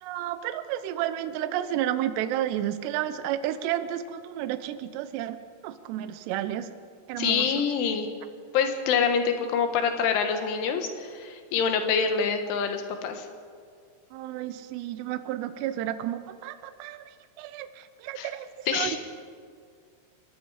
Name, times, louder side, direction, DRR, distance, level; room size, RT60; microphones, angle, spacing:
voice 1, 0.0-6.7 7.1-7.7 14.1-19.0, right 12 dB, 75° right, 11 dB, 2.8 m, -32 dB
voice 2, 7.2-8.1 8.5-13.3 18.2-18.3 18.7-19.0, left 6 dB, 80° left, 6 dB, 4.0 m, -26 dB
26.5 x 20.0 x 5.0 m, 2.1 s
omnidirectional pair, 5.5 m